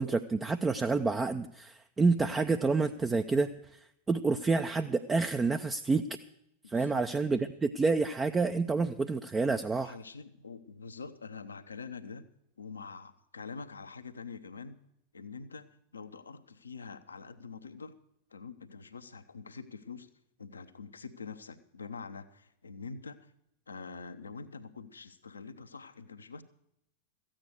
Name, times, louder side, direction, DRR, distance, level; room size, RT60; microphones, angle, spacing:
voice 1, 0.0-6.1 6.7-9.9, right 4 dB, 15° right, 8 dB, 0.5 m, -29 dB
voice 2, 6.6-7.0 9.8-12.3 12.6-14.8 15.1-15.7 15.9-17.9 18.3-20.1 20.4-23.3 23.7-26.4, left 5 dB, 75° left, 11 dB, 0.9 m, -45 dB
14.0 x 8.8 x 8.0 m, 0.77 s
figure-of-eight pair, 90°, 0 cm